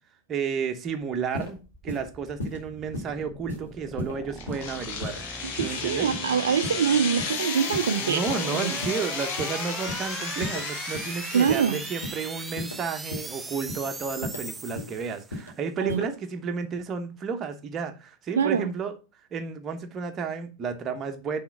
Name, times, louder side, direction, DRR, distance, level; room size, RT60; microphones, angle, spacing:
voice 1, 0.3-5.2 5.6-6.1 8.0-18.9 19.3-21.4, right 5 dB, 25° right, 1.0 m, -32 dB
sound 1, 1.3-1.5 1.9-2.0 2.4-2.6 2.9-3.1 3.5-3.6 4.0-4.1 4.5-4.6 5.0-5.2 5.6-5.8 6.1-6.3 6.6-6.8 7.2-7.4 7.7-7.9 8.3-8.4 8.8-9.0 9.4-9.5 9.9-10.1 10.4-10.6 10.9-11.1 11.5-11.6 12.0-12.2 12.6-12.7 13.1-13.3 13.7-13.8 14.2-14.4 14.8-14.9 15.3-15.5 15.9-16.1, left 1 dB, 70° left, 2.3 m, -34 dB
sound 2, 1.5-15.4, right 3 dB, 10° right, 0.5 m, -39 dB
sound 3, 4.4-12.3, left 6 dB, 50° left, 1.2 m, -34 dB
voice 2, 5.6-8.7 11.3-11.8 15.8-16.0 18.4-18.7, right 7 dB, 65° right, 0.4 m, -24 dB
6.0 x 3.6 x 5.7 m
figure-of-eight pair, 90°, 0 cm